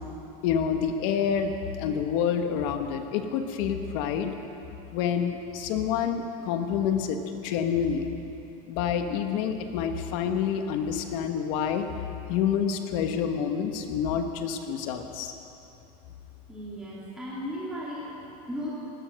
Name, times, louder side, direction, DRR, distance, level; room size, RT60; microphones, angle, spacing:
voice 1, 0.4-4.3 4.9-8.1 8.7-11.9 12.3-15.3, left 7 dB, 55° left, 6 dB, 1.4 m, -28 dB
voice 2, 16.5-18.7, equal, 5° right, -9 dB, 2.6 m, -36 dB
17.0 x 12.0 x 6.5 m, 3.0 s
supercardioid pair, 160°, 20 cm